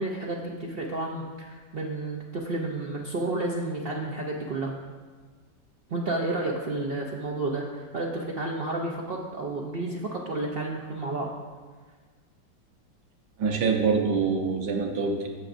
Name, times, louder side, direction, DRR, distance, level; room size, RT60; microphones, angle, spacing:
voice 1, 0.0-4.7 5.9-11.3, right 2 dB, 90° right, -1 dB, 0.5 m, -31 dB
voice 2, 13.4-15.3, right 5 dB, 70° right, 2 dB, 1.5 m, -25 dB
14.5 x 6.0 x 2.6 m, 1.5 s
omnidirectional pair, 1.9 m